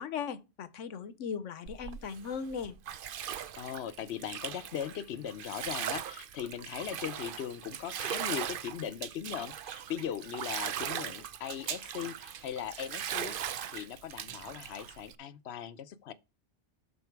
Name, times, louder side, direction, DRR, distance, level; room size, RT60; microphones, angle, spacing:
voice 1, 0.0-2.8, left 6 dB, 85° left, 1.2 m, -38 dB
Bathtub (filling or washing), 1.7-15.1, right 9 dB, 55° right, 0.7 m, -39 dB
voice 2, 3.6-13.4 13.7-16.1, left 9 dB, 65° left, 1.0 m, -39 dB
12.5 x 4.3 x 4.6 m
omnidirectional pair, 1.2 m